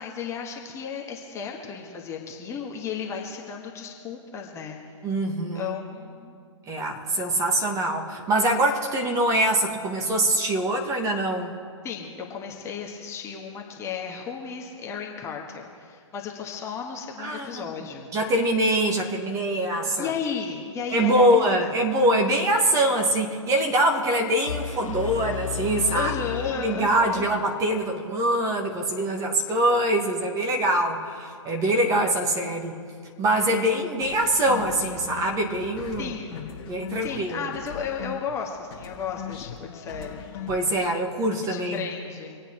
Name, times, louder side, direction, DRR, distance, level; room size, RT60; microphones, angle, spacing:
voice 1, 0.0-4.8 5.5-6.4 7.1-7.4 11.8-18.1 20.0-21.7 25.9-27.3 32.5-32.8 33.5-33.7 36.0-36.4 37.0-40.6 41.5-42.4, left 6 dB, 15° left, 0 dB, 1.6 m, -34 dB
voice 2, 5.0-5.7 6.7-11.5 17.2-17.7 18.1-20.1 20.9-26.1 26.6-32.7 33.2-36.1 36.7-37.5 40.5-41.9, right 1 dB, 20° right, 2 dB, 1.7 m, -24 dB
sound 1, 24.5-27.5, left 8 dB, 85° left, 1.0 m, -33 dB
sound 2, 34.0-38.4 38.7-41.1, left 9 dB, 45° left, 1.9 m, -40 dB
26.0 x 8.9 x 4.6 m, 2.2 s
figure-of-eight pair, 130°, 16 cm